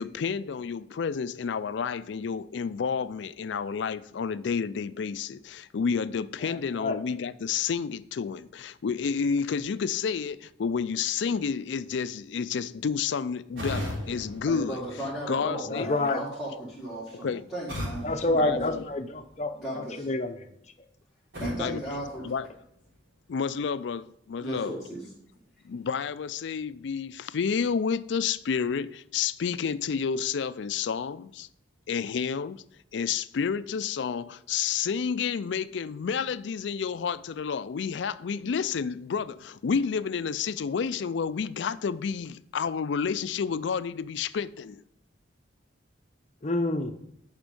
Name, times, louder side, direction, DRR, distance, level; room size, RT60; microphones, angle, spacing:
voice 1, 0.0-14.8 15.3-15.9 17.2-17.4 18.4-18.8 21.6-21.8 22.2-22.5 23.3-24.7 25.6-31.5 31.9-32.6 32.9-44.8, left 6 dB, 70° left, 0.4 m, -30 dB
voice 2, 6.4-7.0 15.7-16.2 18.0-19.5 19.8-20.4 46.4-47.0, left 2 dB, 35° left, 0.7 m, -28 dB
sound 1, 13.6-15.5 17.7-19.4 21.3-23.0, left 1 dB, 80° right, 3.5 m, -38 dB
voice 3, 14.5-18.8 19.5-20.2 21.4-22.3 24.4-25.1, equal, 5° right, 1.9 m, -36 dB
10.5 x 5.2 x 5.3 m
head